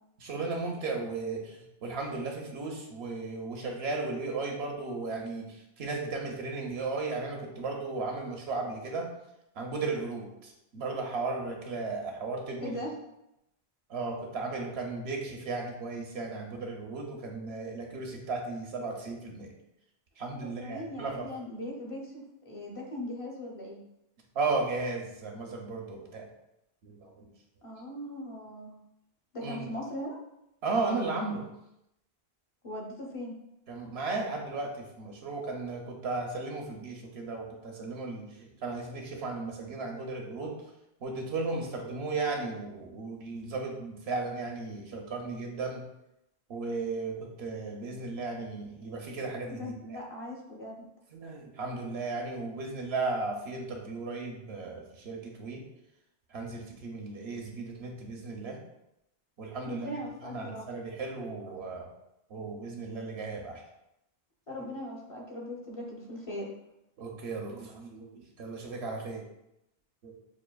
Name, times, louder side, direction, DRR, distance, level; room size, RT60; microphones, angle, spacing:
voice 1, 0.2-9.1 9.6-12.8 13.9-19.5 20.2-21.2 24.3-26.3 26.8-27.2 29.4-29.7 30.6-31.4 33.7-40.5 41.0-45.8 46.5-50.0 51.1-55.6 56.3-58.6 59.4-59.9 60.3-61.9 62.3-63.6 64.6-64.7 67.0-68.1 68.4-69.2 70.0-70.1, right 3 dB, 80° right, 1 dB, 0.9 m, -35 dB
voice 2, 12.6-12.9 20.4-23.8 27.6-28.8 29.3-30.2 32.6-33.3 49.5-50.9 59.7-60.7 64.5-66.5, left 1 dB, 35° left, -2 dB, 0.8 m, -39 dB
5.9 x 2.6 x 2.2 m, 0.85 s
omnidirectional pair, 1.1 m